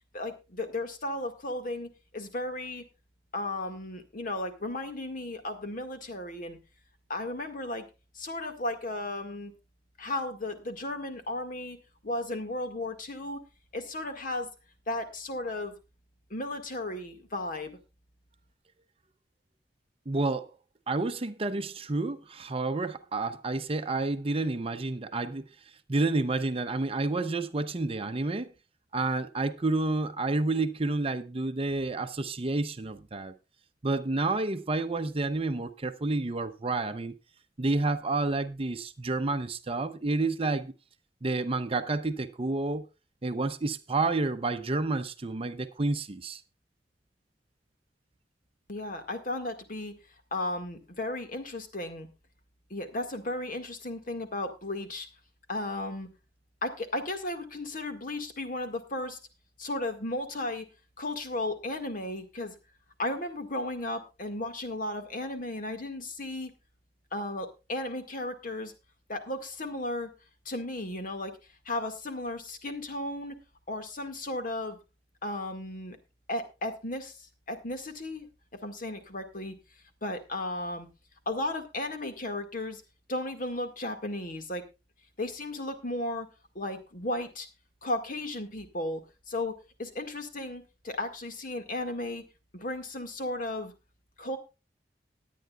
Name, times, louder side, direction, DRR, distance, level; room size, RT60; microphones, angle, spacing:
voice 1, 0.1-2.8 3.3-6.6 7.1-7.9 8.2-9.5 10.0-11.8 12.0-13.4 13.7-14.5 14.9-15.8 16.3-17.8 48.7-49.9 50.3-52.1 52.7-55.1 55.5-56.1 56.6-59.2 59.6-60.7 61.0-62.5 63.0-66.5 67.1-68.7 69.1-70.1 70.5-71.3 71.7-73.4 73.7-74.8 75.2-76.0 76.3-78.3 78.6-79.6 80.0-80.9 81.3-82.8 83.1-84.7 85.2-86.3 86.6-87.5 87.8-92.2 92.5-93.7 94.2-94.4, left 1 dB, 50° left, 1.8 m, -35 dB
voice 2, 20.1-20.5 20.9-25.4 25.9-28.5 28.9-33.3 33.8-37.1 37.6-40.7 41.2-42.8 43.2-46.4, right 2 dB, 35° right, 0.7 m, -29 dB
19.5 x 9.3 x 2.3 m
head